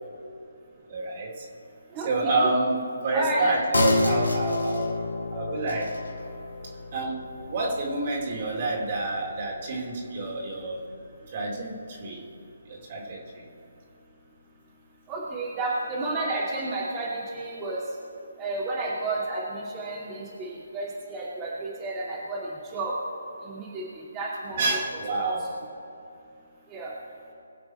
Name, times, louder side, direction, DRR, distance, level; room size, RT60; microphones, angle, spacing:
voice 1, 0.9-1.4 2.0-4.9 5.3-6.0 6.9-10.8 11.3-12.2 12.7-13.5 24.6-25.4, right 2 dB, 40° right, -2 dB, 3.1 m, -28 dB
voice 2, 1.9-2.4 3.1-3.5 15.1-17.8 18.4-22.9 23.4-23.8 24.1-24.8 25.2-25.3 26.7-26.9, right 2 dB, 20° right, -7 dB, 2.6 m, -31 dB
sound 1, 3.7-10.8 11.1-11.2, left 2 dB, 80° left, 2.4 m, -30 dB
23.0 x 7.8 x 4.5 m, 2.7 s
figure-of-eight pair, 150°, 0 cm